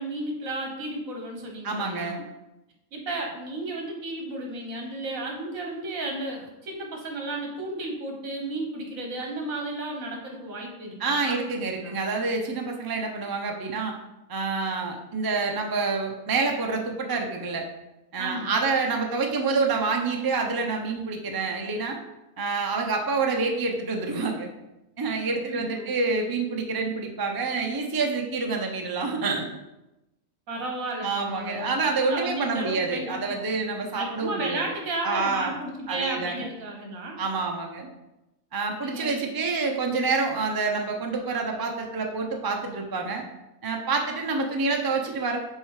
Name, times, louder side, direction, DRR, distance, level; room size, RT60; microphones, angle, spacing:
voice 1, 0.0-2.2 2.9-11.4 11.6-12.0 18.2-18.6 25.3-25.9 30.5-33.5 33.9-37.2 38.8-39.2, right 2 dB, 70° right, 1 dB, 1.7 m, -33 dB
voice 2, 1.6-2.3 11.0-14.0 14.3-17.6 18.1-22.0 22.4-24.5 25.0-29.5 31.0-34.6 35.0-35.5 35.9-36.4 37.2-37.9 38.5-43.2 43.6-45.4, right 4 dB, 25° right, 2 dB, 0.5 m, -27 dB
6.5 x 3.9 x 4.8 m, 0.94 s
omnidirectional pair, 1.5 m